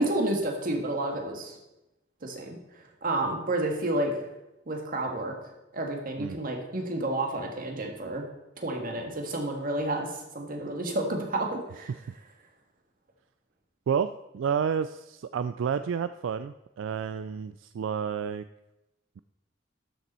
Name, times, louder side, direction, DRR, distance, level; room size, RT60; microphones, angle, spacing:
voice 1, 0.0-1.6 2.2-4.2 4.7-5.3 5.7-8.3 8.6-11.9, right 1 dB, 50° right, 2 dB, 1.7 m, -30 dB
voice 2, 13.9-18.4, right 7 dB, 75° right, 12 dB, 0.3 m, -30 dB
12.0 x 6.8 x 4.3 m, 0.96 s
head